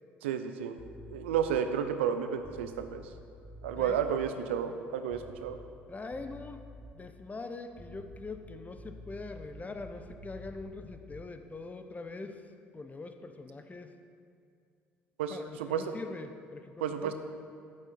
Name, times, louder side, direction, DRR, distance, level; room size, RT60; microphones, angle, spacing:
voice 1, 0.2-0.8 1.1-3.0 3.6-5.6 15.2-15.9 16.8-17.1, right 8 dB, 80° right, 8 dB, 0.7 m, -32 dB
sound 1, 0.8-1.7 2.4-4.3 5.1-5.8 6.1-7.1 7.7-11.4, left 1 dB, 10° right, 1.4 m, -50 dB
voice 2, 5.9-6.7 6.9-12.4 12.7-13.9 15.3-17.1, left 3 dB, 25° left, 7 dB, 1.0 m, -43 dB
13.0 x 8.4 x 4.4 m, 2.4 s
hypercardioid pair, 55°, 6 cm